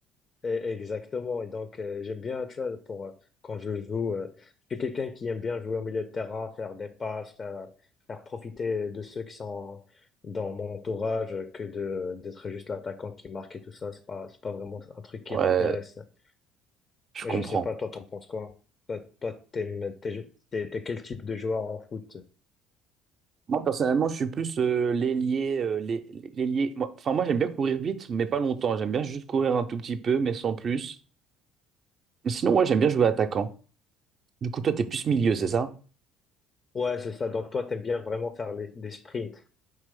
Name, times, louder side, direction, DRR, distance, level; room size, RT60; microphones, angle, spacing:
voice 1, 0.4-3.2 3.4-7.8 8.1-9.8 10.2-15.9 17.2-18.5 18.9-22.3 35.4-35.5 36.7-39.4, left 4 dB, 35° left, 0.4 m, -33 dB
voice 2, 15.3-15.8 17.1-17.6 23.5-31.0 32.2-33.5 34.4-35.7, right 6 dB, 45° right, 0.4 m, -26 dB
4.6 x 3.0 x 3.3 m
figure-of-eight pair, 55°, 0 cm